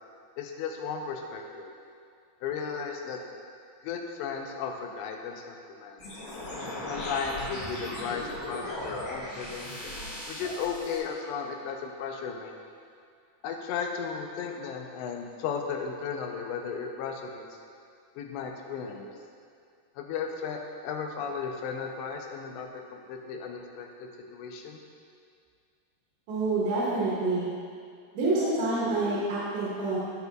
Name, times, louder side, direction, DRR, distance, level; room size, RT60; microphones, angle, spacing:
voice 1, 0.4-1.7 2.4-3.2 3.8-6.0 6.9-9.8 10.3-12.5 13.4-17.4 18.2-19.1 20.0-24.8, left 6 dB, 85° left, 2 dB, 3.0 m, -35 dB
sound 1, 6.0-11.0, left 1 dB, 50° left, 2.0 m, -37 dB
voice 2, 26.3-27.4 28.1-30.0, right 2 dB, 80° right, -9 dB, 4.0 m, -27 dB
16.0 x 6.7 x 2.4 m, 2.3 s
omnidirectional pair, 5.0 m